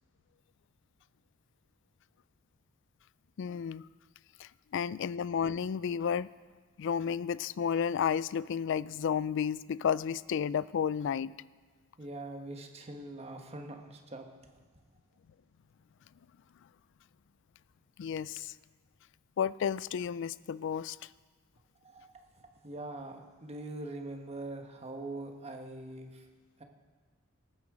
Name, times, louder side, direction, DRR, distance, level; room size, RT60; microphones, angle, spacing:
voice 1, 3.4-3.9 4.4-6.3 6.8-11.3 18.0-18.5 19.4-21.0, left 7 dB, 60° left, 19 dB, 0.3 m, -32 dB
voice 2, 12.0-14.3 21.8-26.3 26.6-26.7, right 2 dB, 30° right, 4 dB, 1.2 m, -43 dB
18.5 x 9.7 x 5.0 m, 1.5 s
head